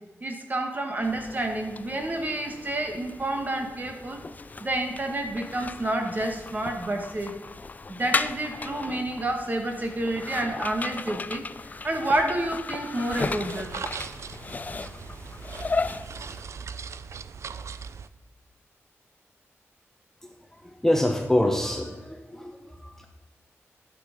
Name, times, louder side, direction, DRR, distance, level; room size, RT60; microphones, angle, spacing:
voice 1, 0.2-4.2 4.6-7.4 7.9-11.4 11.8-13.7, right 1 dB, 35° right, 4 dB, 1.5 m, -29 dB
sound 1, 1.0-16.4, left 3 dB, 35° left, 0.4 m, -36 dB
sound 2, 13.1-18.1, right 6 dB, 70° right, 0.5 m, -39 dB
voice 2, 20.2-23.1, left 1 dB, 10° left, 3 dB, 1.0 m, -26 dB
11.5 x 6.5 x 5.2 m, 1.2 s
wide cardioid pair, 120°, 5 cm